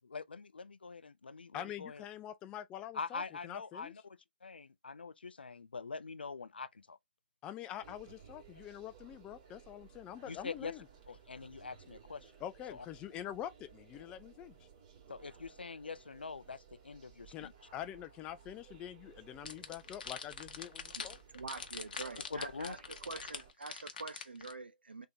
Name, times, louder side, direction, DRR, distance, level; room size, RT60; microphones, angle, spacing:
voice 1, 0.0-2.0 2.9-7.0 10.3-10.7 11.1-12.3 12.7-12.9 15.1-17.5 22.3-22.8, left 4 dB, 85° left, 0.4 m, -44 dB
voice 2, 1.5-3.9 7.4-10.9 12.4-14.6 17.3-21.2, left 11 dB, 15° left, 0.5 m, -45 dB
sound 1, 7.8-23.5, right 7 dB, 35° right, 2.0 m, -59 dB
sound 2, 19.4-24.5, left 6 dB, 60° left, 0.9 m, -44 dB
voice 3, 20.9-25.1, right 4 dB, 85° right, 0.8 m, -46 dB
3.5 x 3.5 x 2.7 m
hypercardioid pair, 145°, 5 cm